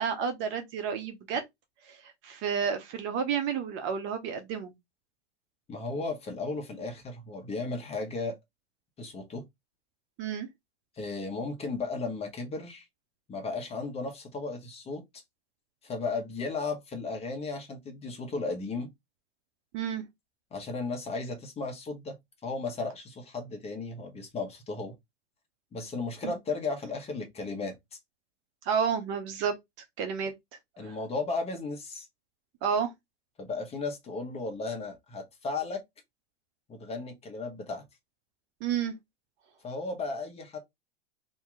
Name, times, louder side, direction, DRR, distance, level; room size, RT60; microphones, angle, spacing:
voice 1, 0.0-1.4 1.9-2.0 2.2-4.7 10.2-10.5 19.7-20.0 26.2-26.3 28.6-29.5 30.0-30.3 30.8-30.9 32.6-32.9 38.6-38.9, right 7 dB, 35° right, 0.8 m, -30 dB
voice 2, 5.7-8.4 9.0-9.4 10.9-12.9 13.3-15.2 15.8-18.9 20.5-22.2 22.4-24.9 25.7-28.0 30.8-32.1 33.4-35.8 36.7-37.8 39.6-40.6, left 3 dB, 20° left, 1.1 m, -35 dB
2.9 x 2.8 x 3.7 m
hypercardioid pair, 125°, 33 cm